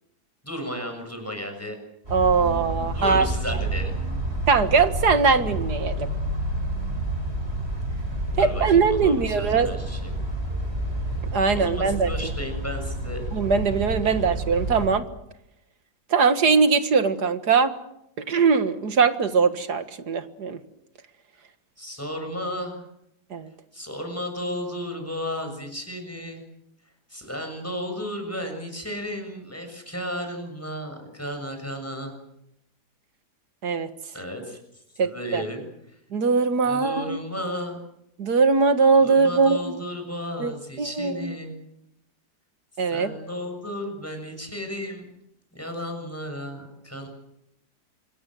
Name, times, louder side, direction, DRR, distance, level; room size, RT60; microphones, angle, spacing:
voice 1, 0.4-1.8 2.9-3.9 8.4-10.1 11.5-13.2 14.0-14.2 21.8-22.8 23.7-26.4 27.1-32.2 34.1-36.0 36.6-37.8 39.0-41.5 42.9-45.0 45.5-47.1, equal, 10° left, 4 dB, 6.9 m, -34 dB
sound 1, 2.1-14.9, right 1 dB, 35° right, 6.1 m, -29 dB
voice 2, 2.1-3.3 4.5-6.1 8.4-9.7 11.3-12.1 13.3-15.1 16.1-17.7 18.2-20.6 23.3-23.5 33.6-33.9 35.0-35.4 36.1-37.2 38.2-39.7 40.4-40.5 40.8-41.4 42.8-43.1, right 5 dB, 70° right, 10 dB, 2.2 m, -21 dB
26.5 x 21.5 x 7.8 m, 0.81 s
omnidirectional pair, 1.8 m